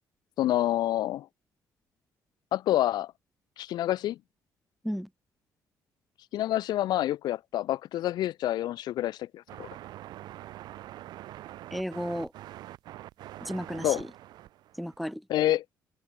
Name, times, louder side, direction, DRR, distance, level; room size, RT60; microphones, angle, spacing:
voice 1, 0.4-1.3 2.5-3.1 3.6-4.2 6.3-9.7 13.8-14.0 15.3-15.6, left 13 dB, 85° left, 5.6 m, -27 dB
sound 1, 9.5-15.0, right 14 dB, 90° right, 7.3 m, -44 dB
voice 2, 11.7-12.3 13.4-14.1 14.8-15.2, equal, ahead, 3.0 m, -33 dB
open air
cardioid pair, 135°, 7 cm